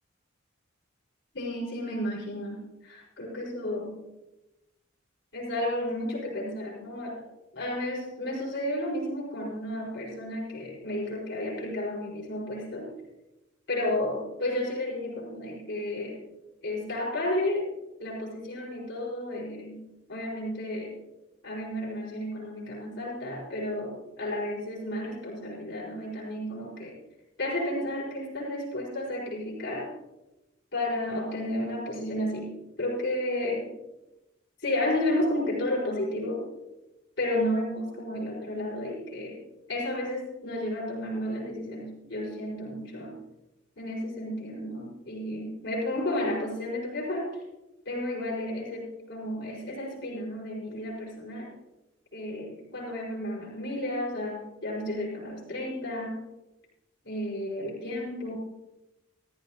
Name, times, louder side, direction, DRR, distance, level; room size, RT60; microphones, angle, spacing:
voice 1, 1.3-4.0 5.3-7.2 7.5-12.9 13.7-16.2 16.6-17.7 18.0-19.8 20.1-20.9 21.4-26.9 27.4-29.9 30.7-33.7 34.6-36.4 37.2-39.4 39.7-43.2 43.8-47.3 47.8-51.5 52.1-56.2 57.0-58.4, left 1 dB, 60° left, -5 dB, 4.8 m, -32 dB
15.0 x 13.5 x 2.8 m, 0.98 s
head